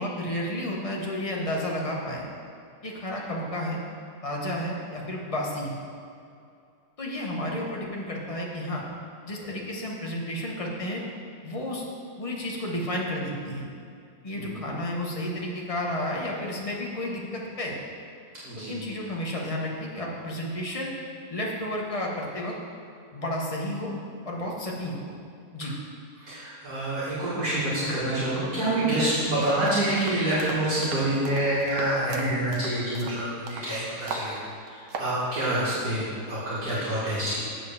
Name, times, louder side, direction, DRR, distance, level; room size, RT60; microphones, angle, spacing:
voice 1, 0.0-2.2 2.8-3.8 4.2-5.8 7.0-8.8 9.3-11.0 11.4-11.8 12.2-13.7 14.2-17.8 18.6-20.9 21.3-22.6 23.1-23.9 24.2-25.1 25.5-25.7, left 1 dB, 25° left, -2 dB, 0.9 m, -31 dB
voice 2, 18.4-18.9 26.2-37.4, right 1 dB, 60° right, -11 dB, 2.4 m, -27 dB
sound 1, 29.6-33.7 34.1-34.3 34.7-35.1, right 4 dB, 90° right, 1.5 m, -37 dB
7.7 x 4.5 x 6.8 m, 2.5 s
omnidirectional pair, 1.8 m